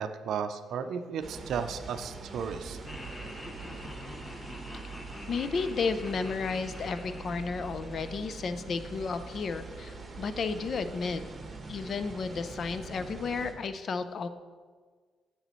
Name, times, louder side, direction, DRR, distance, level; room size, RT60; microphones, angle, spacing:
voice 1, 0.0-2.8, right 7 dB, 70° right, 9 dB, 0.5 m, -34 dB
sound 1, 1.2-13.5, right 4 dB, 30° right, 1.1 m, -43 dB
Laughter, 2.8-9.0, left 1 dB, 20° left, 0.8 m, -46 dB
voice 2, 5.3-11.2 11.7-14.3, left 4 dB, 50° left, 11 dB, 0.5 m, -33 dB
9.0 x 6.6 x 3.1 m, 1.5 s
cardioid pair, 90°, 0 cm